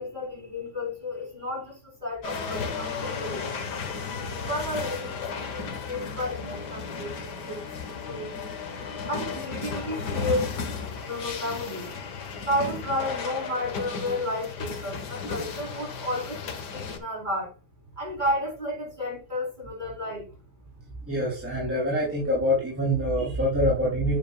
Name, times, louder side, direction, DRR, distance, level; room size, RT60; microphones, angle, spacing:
voice 1, 0.0-3.7 4.4-8.5 9.1-10.5 11.0-11.9 12.4-16.4 16.7-17.5 18.0-20.3, left 1 dB, 25° right, 4.7 m, -32 dB
sound 1, 2.2-17.0, left 5 dB, 80° left, 2.0 m, -34 dB
voice 2, 21.1-24.2, equal, 5° right, 3.6 m, -25 dB
9.3 x 7.9 x 2.4 m
omnidirectional pair, 1.8 m